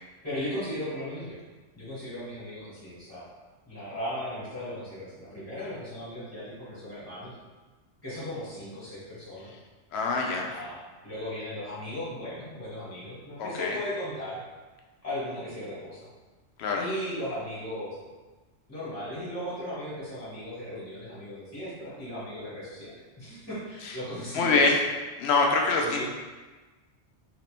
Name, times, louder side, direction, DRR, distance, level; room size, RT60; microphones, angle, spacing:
voice 1, 0.2-1.4 1.7-3.2 3.6-7.3 8.0-9.5 10.4-14.4 15.0-16.1 16.7-17.9 18.7-24.6 25.8-26.0, left 1 dB, 15° left, -10 dB, 1.4 m, -37 dB
voice 2, 9.9-10.5 13.4-13.8 16.6-16.8 23.8-24.0 24.3-24.8 25.2-26.0, left 3 dB, 70° left, 1 dB, 0.8 m, -24 dB
3.2 x 2.8 x 3.3 m, 1.3 s
omnidirectional pair, 1.2 m